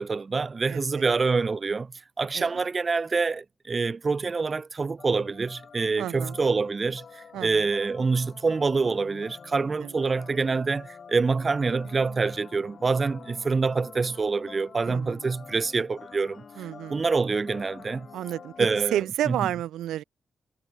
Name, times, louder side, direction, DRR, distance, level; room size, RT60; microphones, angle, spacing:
voice 1, 0.0-1.9 2.2-16.4 16.9-18.1 18.6-19.4, right 4 dB, 45° right, 1.9 m, -26 dB
voice 2, 0.7-1.1 2.3-2.7 6.0-6.4 7.3-7.7 9.8-9.9 14.9-15.2 16.6-17.0 18.1-20.0, right 12 dB, 90° right, 1.4 m, -31 dB
sound 1, 5.0-18.8, left 6 dB, 60° left, 2.3 m, -47 dB
supercardioid pair, 55°, 0 cm